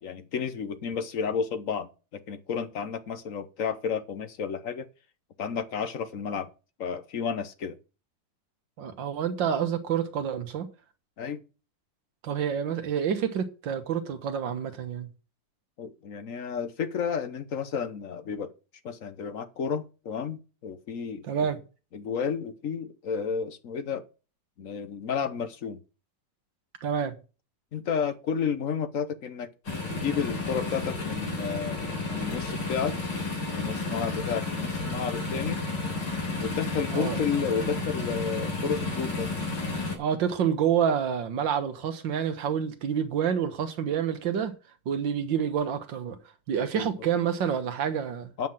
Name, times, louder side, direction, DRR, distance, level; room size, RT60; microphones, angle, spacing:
voice 1, 0.0-4.9 5.4-6.5 6.8-7.8 11.2-11.4 15.8-18.5 18.8-21.5 21.9-24.0 24.6-25.8 27.7-29.5 29.9-33.0 33.5-35.6 36.4-39.3 46.7-46.9 48.4-48.5, left 6 dB, 50° left, 1.2 m, -31 dB
voice 2, 8.8-10.7 12.2-15.1 21.2-21.6 26.8-27.2 36.9-37.2 40.0-44.5 44.9-46.2 46.5-48.5, right 8 dB, 80° right, 1.9 m, -28 dB
sound 1, 29.6-40.0, left 3 dB, 70° left, 4.2 m, -32 dB
9.1 x 5.7 x 7.6 m
omnidirectional pair, 2.0 m